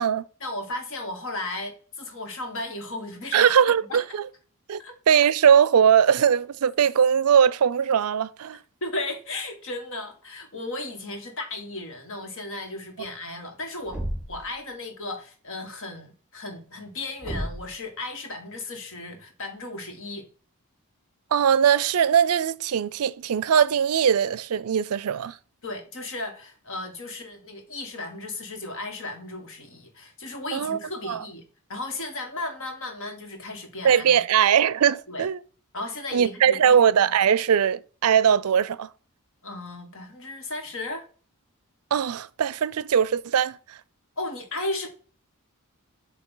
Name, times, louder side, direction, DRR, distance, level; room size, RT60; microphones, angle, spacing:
voice 1, 0.4-3.5 3.9-4.0 4.8-4.9 8.8-14.0 14.3-20.3 25.6-31.4 31.7-34.2 35.1-35.3 35.7-37.1 39.4-41.1 44.2-44.9, left 2 dB, 60° left, 1.7 m, -35 dB
voice 2, 3.3-4.2 4.7-4.8 5.1-8.6 21.3-25.4 30.5-30.8 31.0-31.2 33.8-35.4 36.1-38.9 41.9-43.8, right 8 dB, 75° right, 0.4 m, -20 dB
Thump thud, 13.9-14.5 17.2-17.8, right 1 dB, 5° right, 1.9 m, -32 dB
7.7 x 2.8 x 5.5 m
head